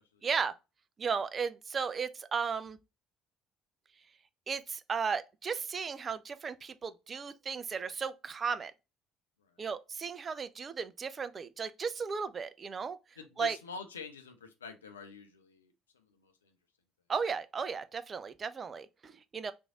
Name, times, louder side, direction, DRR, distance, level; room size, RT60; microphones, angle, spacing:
voice 1, 0.2-0.5 1.0-2.8 4.5-8.7 9.6-13.0 13.4-13.6 17.1-19.5, right 5 dB, 35° right, 0.4 m, -35 dB
voice 2, 13.2-15.7 16.2-16.3, left 5 dB, 85° left, 0.5 m, -45 dB
3.1 x 2.6 x 3.5 m
figure-of-eight pair, 55°, 0 cm